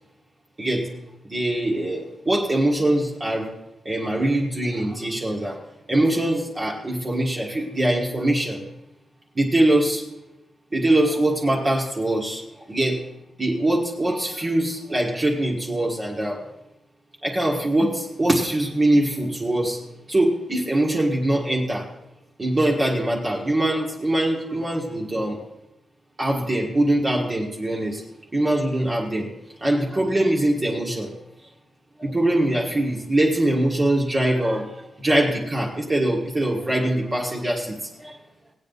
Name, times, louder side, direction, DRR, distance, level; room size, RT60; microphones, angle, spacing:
voice 1, 0.6-0.9 1.2-3.5 3.8-5.6 5.9-8.6 9.3-10.0 10.7-13.0 13.4-16.4 17.2-19.8 20.1-21.9 22.4-25.4 26.2-28.0 28.3-29.3 29.6-31.1 32.0-38.2, right 1 dB, 20° right, -2 dB, 1.6 m, -23 dB
18.5 x 8.9 x 4.0 m, 0.88 s
wide cardioid pair, 135°, 0 cm